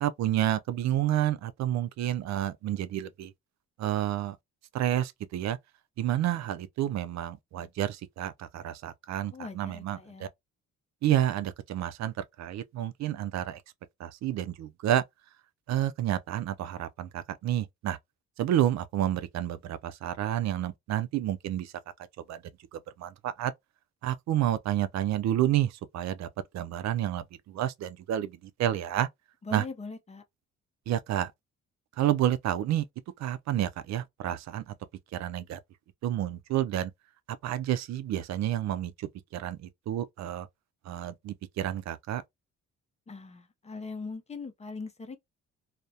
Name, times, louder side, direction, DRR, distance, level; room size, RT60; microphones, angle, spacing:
voice 1, 0.0-3.3 3.8-4.4 4.7-5.6 6.0-10.3 11.0-13.6 14.0-15.0 15.7-18.0 18.4-21.7 22.3-22.4 22.7-23.5 24.0-26.3 26.5-29.1 29.5-29.6 30.9-31.3 32.0-32.9 33.2-34.8 35.1-35.6 36.0-36.9 37.4-40.5 40.9-42.2, right 12 dB, 65° right, 0.4 m, -30 dB
voice 2, 9.3-10.3 29.4-30.2 43.1-45.2, left 4 dB, 20° left, 0.5 m, -41 dB
2.2 x 2.1 x 2.7 m
cardioid pair, 90°, 30 cm